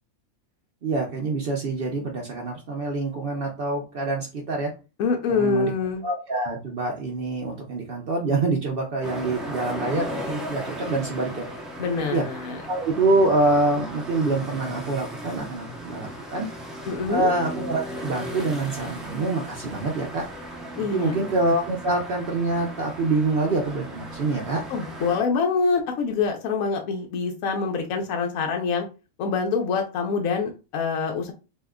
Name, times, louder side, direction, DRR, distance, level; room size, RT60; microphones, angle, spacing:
voice 1, 0.8-4.7 5.3-5.7 6.0-11.5 12.1-12.2 12.7-16.5 17.1-20.3 20.9-24.6, right 2 dB, 60° right, 1 dB, 0.6 m, -25 dB
voice 2, 5.0-6.0 11.8-12.6 16.9-17.3 20.8-21.2 24.7-28.9 29.2-31.3, left 4 dB, 80° left, 3 dB, 1.0 m, -25 dB
sound 1, 9.0-25.2, equal, ahead, 0.4 m, -36 dB
3.5 x 2.7 x 2.2 m, 0.31 s
omnidirectional pair, 1.5 m